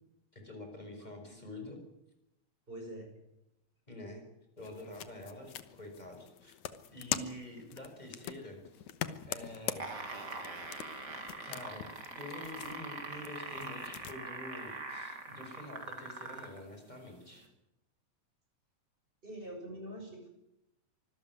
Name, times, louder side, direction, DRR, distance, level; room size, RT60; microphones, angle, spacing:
voice 1, 0.3-1.8 3.9-4.2 4.6-6.6 6.9-8.9 9.3-10.2 11.5-17.5, left 1 dB, 15° left, 4 dB, 5.8 m, -47 dB
voice 2, 2.7-3.1 19.2-20.3, right 1 dB, 15° right, 2 dB, 6.6 m, -45 dB
sound 1, 4.6-14.2, left 11 dB, 80° left, 2.6 m, -43 dB
sound 2, 9.6-16.6 17.4-17.5, right 3 dB, 35° right, 3.9 m, -42 dB
25.0 x 14.0 x 9.6 m, 0.86 s
omnidirectional pair, 3.4 m